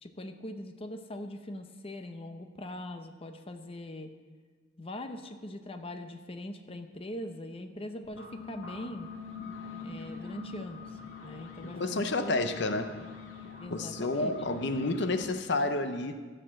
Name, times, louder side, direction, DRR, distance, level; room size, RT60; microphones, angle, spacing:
voice 1, 0.0-4.1 4.8-9.1 9.8-12.5 13.6-14.3, left 1 dB, 30° left, 6 dB, 0.7 m, -41 dB
sound 1, 8.0-15.3, left 5 dB, 85° left, 2.1 m, -44 dB
voice 2, 11.6-13.0 13.7-16.2, left 2 dB, 65° left, 9 dB, 0.7 m, -30 dB
13.5 x 6.6 x 7.5 m, 1.5 s
head